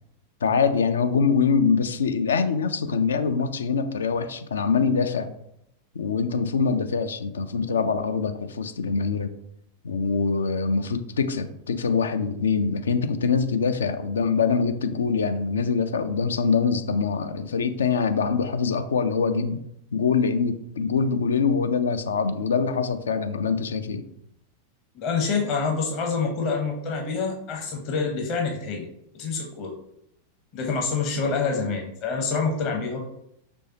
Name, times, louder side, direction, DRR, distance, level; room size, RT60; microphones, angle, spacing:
voice 1, 0.4-5.3 6.0-9.3 9.8-19.6 19.9-24.0 31.2-31.3, left 5 dB, 70° left, 9 dB, 0.4 m, -24 dB
voice 2, 25.0-28.9 29.2-29.7 30.5-33.0, left 4 dB, 40° left, 1 dB, 0.9 m, -26 dB
5.4 x 3.3 x 2.8 m, 0.76 s
figure-of-eight pair, 90°, 0 cm